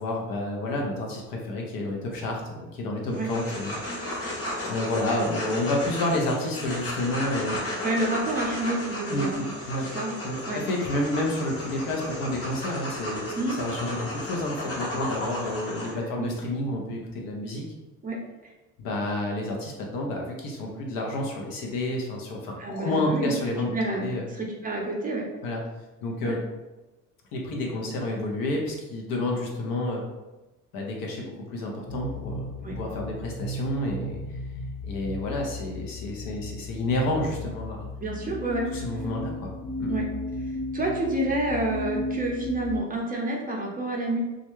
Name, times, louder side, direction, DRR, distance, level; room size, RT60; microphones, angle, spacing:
voice 1, 0.0-3.7 4.7-7.8 9.1-9.9 10.2-17.6 18.8-24.2 25.4-25.6 26.0-26.4 27.3-30.0 30.7-32.5 32.8-34.2 34.8-37.9 38.7-39.5 39.8-39.9, left 1 dB, 65° left, 0 dB, 0.8 m, -30 dB
sound 1, 3.1-15.9, left 1 dB, 35° left, 1.0 m, -34 dB
voice 2, 7.8-9.4 9.9-10.1 10.5-10.6 13.4-13.6 15.7-16.3 18.0-18.5 22.6-23.3 23.7-25.3 26.2-26.3 32.6-32.8 38.0-38.7 39.9-40.1 40.4-44.2, right 2 dB, 20° right, -1 dB, 0.6 m, -29 dB
sound 2, 31.9-42.8, left 2 dB, 20° left, 0.4 m, -35 dB
2.4 x 2.2 x 3.0 m, 1.1 s
supercardioid pair, 90°, 38 cm